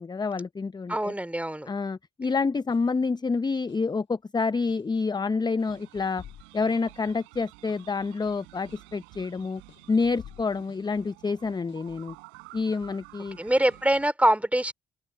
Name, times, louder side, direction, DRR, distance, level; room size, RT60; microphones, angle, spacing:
voice 1, 0.0-1.1 1.7-6.2 6.5-9.6 9.9-12.2 12.5-13.4, left 4 dB, 20° left, 0.7 m, -28 dB
voice 2, 0.9-1.7 13.4-14.7, right 1 dB, 5° right, 3.3 m, -24 dB
sound 1, 2.4-3.0 3.7-4.0 4.7-5.0 5.7-7.0 7.7-8.0 8.7-9.0 9.7-11.0 11.7-12.0 12.7-13.0 13.7-14.0, left 11 dB, 65° left, 6.8 m, -51 dB
sound 2, 5.6-14.1, right 28 dB, 85° right, 5.7 m, -51 dB
hypercardioid pair, 55°, 20 cm